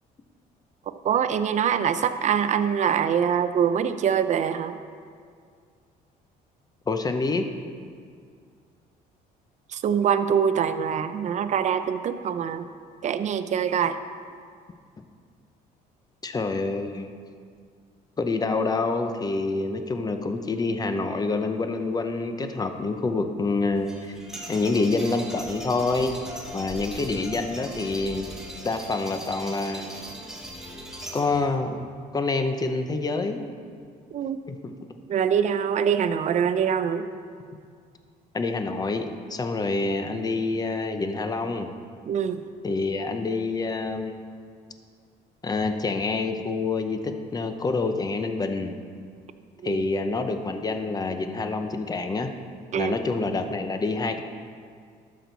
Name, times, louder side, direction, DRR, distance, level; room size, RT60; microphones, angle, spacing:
voice 1, 1.0-4.8 9.7-12.6 13.0-14.0 34.1-34.4 35.1-37.1 42.1-42.4 49.6-49.8 52.7-53.0, right 8 dB, 45° right, 10 dB, 0.5 m, -24 dB
voice 2, 6.9-7.5 16.2-17.1 18.2-24.2 24.5-26.2 26.5-28.3 28.6-29.9 31.1-33.6 34.5-34.7 38.3-41.7 42.6-44.5 45.4-48.8 49.6-52.3 52.7-54.2, left 3 dB, 25° left, 7 dB, 0.7 m, -27 dB
sound 1, 23.8-31.6, equal, 5° right, 1.3 m, -39 dB
12.5 x 6.2 x 4.0 m, 2.1 s
cardioid pair, 110°, 17 cm